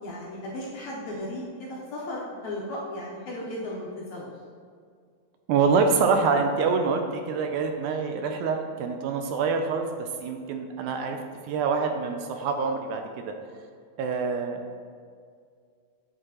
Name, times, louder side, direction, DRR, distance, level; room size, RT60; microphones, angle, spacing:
voice 1, 0.0-4.3, left 1 dB, 70° left, -4 dB, 1.9 m, -35 dB
voice 2, 5.5-11.2 11.5-13.0 14.0-14.6, right 5 dB, 80° right, 5 dB, 1.8 m, -25 dB
9.6 x 4.7 x 2.9 m, 2.1 s
omnidirectional pair, 3.9 m